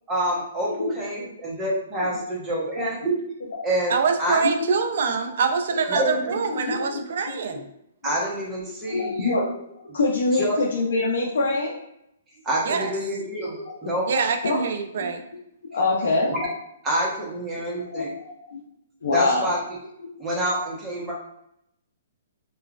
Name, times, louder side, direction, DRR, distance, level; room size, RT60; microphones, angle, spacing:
voice 1, 0.1-3.2 3.6-3.9 4.2-4.4 5.9-6.4 8.0-9.4 10.3-10.6 12.4-13.6 13.8-14.1 16.3-16.4 16.8-18.1 19.1-19.6 20.2-21.1, right 1 dB, 20° right, -4 dB, 1.0 m, -27 dB
voice 2, 3.9-7.6 12.6-12.9 14.1-15.2, right 5 dB, 65° right, 5 dB, 0.4 m, -25 dB
voice 3, 6.5-7.0 8.8-11.8 13.8-13.9 14.4-14.6 14.9-15.1 15.7-16.3 17.7-18.6 19.0-19.5, left 3 dB, 80° left, -3 dB, 0.6 m, -25 dB
2.9 x 2.3 x 2.4 m, 0.78 s
hypercardioid pair, 140°, 0 cm